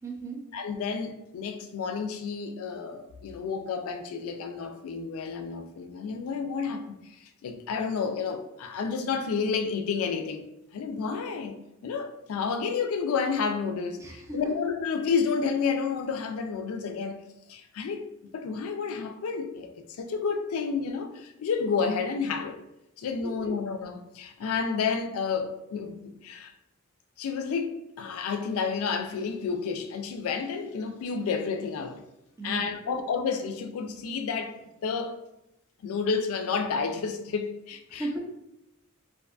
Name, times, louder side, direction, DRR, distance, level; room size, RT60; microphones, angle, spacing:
voice 1, 0.0-0.4 14.0-14.4 23.2-23.5 32.4-32.6 32.8-33.0 37.9-38.2, right 2 dB, 15° right, 0.3 m, -36 dB
voice 2, 0.5-6.9 7.2-10.4 10.7-17.2 17.5-18.1 18.3-22.6 23.0-26.5 27.2-32.0 32.4-35.2 35.8-38.0, left 5 dB, 75° left, 0.3 m, -30 dB
2.5 x 2.4 x 2.2 m
head